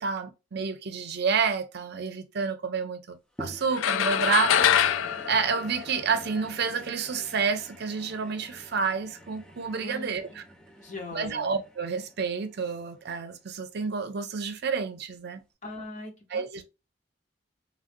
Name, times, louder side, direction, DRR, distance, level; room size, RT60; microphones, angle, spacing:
voice 1, 0.0-4.7 5.3-10.4 11.1-15.4 16.3-16.6, right 5 dB, 60° right, 0.6 m, -29 dB
sound 1, 3.4-13.9 14.5-14.6, equal, 5° left, 0.6 m, -47 dB
sound 2, 3.8-6.4, left 9 dB, 85° left, 0.3 m, -24 dB
voice 2, 9.8-10.4 10.7-11.5 15.6-16.6, left 2 dB, 40° left, 1.0 m, -41 dB
3.2 x 2.6 x 2.5 m
head